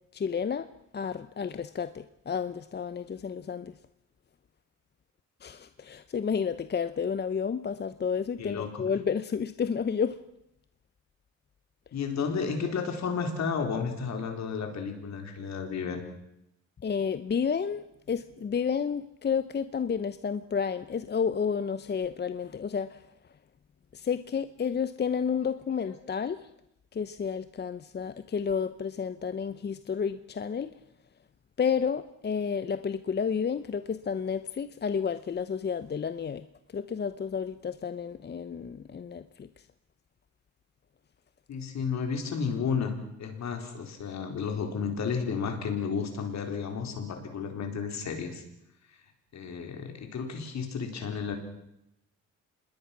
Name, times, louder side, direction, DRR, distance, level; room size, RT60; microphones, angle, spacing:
voice 1, 0.1-0.7 0.9-3.7 5.4-10.2 16.8-23.0 23.9-26.4 26.9-30.7 31.6-36.4 36.7-39.5, left 6 dB, 35° left, 12 dB, 0.8 m, -31 dB
voice 2, 8.4-8.8 11.9-16.0 25.7-25.9 41.5-48.4 49.3-51.4, left 5 dB, 65° left, 4 dB, 4.4 m, -32 dB
26.5 x 20.5 x 6.1 m, 0.83 s
cardioid pair, 90°, 30 cm